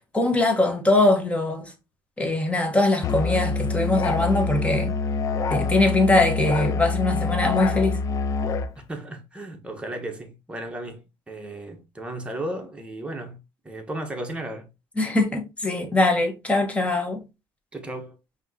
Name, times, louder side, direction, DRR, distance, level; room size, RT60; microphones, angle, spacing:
voice 1, 0.1-1.7 2.2-5.0 5.5-8.0 15.0-17.2, left 2 dB, 15° left, 1.2 m, -22 dB
Musical instrument, 3.0-8.7, left 4 dB, 35° left, 0.4 m, -26 dB
voice 2, 8.9-11.0 11.3-13.4 13.6-14.7 17.7-18.2, right 1 dB, 10° right, 1.1 m, -34 dB
5.5 x 2.9 x 2.7 m
cardioid pair, 130°, 9 cm